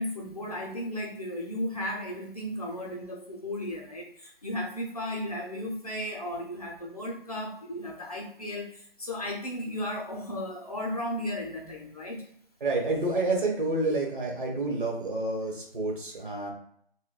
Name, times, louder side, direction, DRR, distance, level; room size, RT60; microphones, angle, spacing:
voice 1, 0.0-12.3, left 1 dB, 40° left, -1 dB, 0.6 m, -35 dB
voice 2, 12.6-16.5, right 2 dB, 60° right, 0 dB, 1.1 m, -29 dB
3.7 x 2.2 x 2.2 m, 0.66 s
hypercardioid pair, 180°, 30 cm